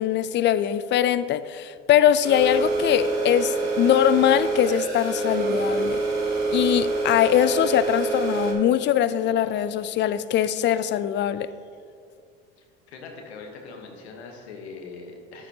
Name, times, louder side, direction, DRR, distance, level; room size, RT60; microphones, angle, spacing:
voice 1, 0.0-6.0 6.5-11.5, left 11 dB, 35° left, 0.4 m, -22 dB
sound 1, 2.2-8.5, right 3 dB, 55° right, 2.0 m, -26 dB
voice 2, 12.6-15.5, left 4 dB, 85° left, 1.2 m, -41 dB
9.8 x 8.4 x 2.8 m
hypercardioid pair, 80°, 32 cm